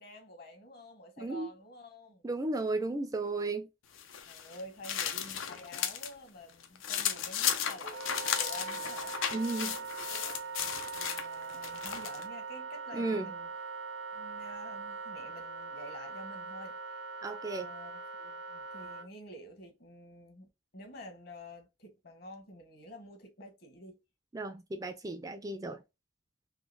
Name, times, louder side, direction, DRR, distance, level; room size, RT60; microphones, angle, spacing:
voice 1, 0.0-2.3 4.3-9.4 9.7-10.4 10.8-13.5 14.1-17.0 17.6-24.0, left 1 dB, 50° left, 1.2 m, -50 dB
voice 2, 1.2-1.5 2.2-3.7 9.3-9.8 12.9-13.3 17.2-17.7 24.3-25.8, right 2 dB, 20° right, 0.3 m, -34 dB
sound 1, 3.9-6.1 6.5-12.3, left 8 dB, 85° left, 0.6 m, -35 dB
Wind instrument woodwind instrument, 7.8-19.1, right 4 dB, 75° right, 0.5 m, -41 dB
3.7 x 2.8 x 2.5 m
head